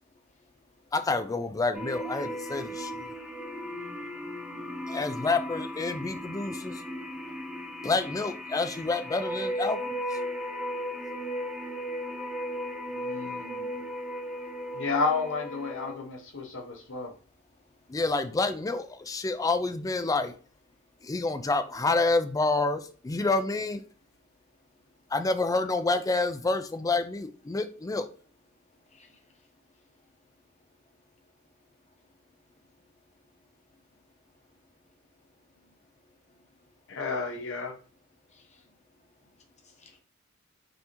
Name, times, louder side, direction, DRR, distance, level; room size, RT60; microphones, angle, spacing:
voice 1, 0.9-3.1 4.9-6.8 7.8-10.0 17.9-20.3 21.0-23.8 25.1-28.1, left 3 dB, 15° left, 0.3 m, -28 dB
sound 1, 1.7-15.9, equal, 5° right, 0.7 m, -36 dB
voice 2, 12.9-13.8 14.7-17.1 36.9-37.7, left 4 dB, 65° left, 0.9 m, -31 dB
voice 3, 28.9-29.2 35.5-35.7 36.3-36.4 38.3-38.7 39.2-39.3 39.6-40.0, left 3 dB, 35° left, 0.9 m, -61 dB
5.3 x 2.8 x 2.9 m
head